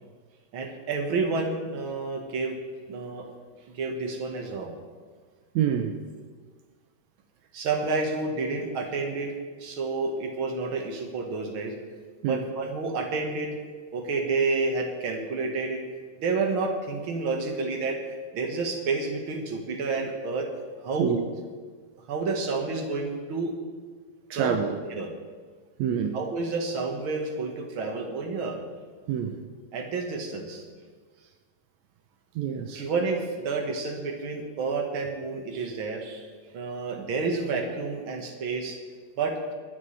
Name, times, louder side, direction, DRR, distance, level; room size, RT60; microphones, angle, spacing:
voice 1, 0.5-2.6 2.9-3.3 3.7-4.7 7.5-9.3 9.6-11.7 12.2-13.6 13.9-15.8 16.2-18.0 18.3-20.5 20.8-21.2 22.1-23.5 24.3-24.5 24.9-25.1 26.1-28.6 29.7-30.7 32.7-36.3 36.5-38.8 39.2-39.3, right 3 dB, 50° right, 2 dB, 1.8 m, -29 dB
voice 2, 5.5-6.0 12.2-12.5 21.0-21.2 24.3-24.8 25.8-26.2 29.1-29.4 32.3-32.9, right 8 dB, 85° right, 5 dB, 1.5 m, -27 dB
25.0 x 9.9 x 3.4 m, 1.5 s
omnidirectional pair, 4.1 m